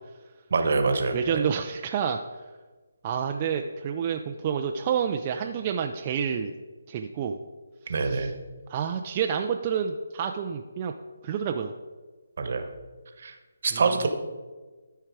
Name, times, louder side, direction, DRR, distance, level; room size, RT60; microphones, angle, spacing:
voice 1, 0.5-1.4 7.9-8.3 12.4-12.7 13.2-13.3 13.6-14.1, right 4 dB, 55° right, 6 dB, 1.2 m, -25 dB
voice 2, 1.1-2.2 3.0-6.5 6.9-7.4 7.9-8.3 8.7-10.9 11.2-11.7 13.7-13.8, right 7 dB, 30° right, 4 dB, 0.4 m, -29 dB
12.5 x 4.6 x 4.8 m, 1.3 s
hypercardioid pair, 160°, 0 cm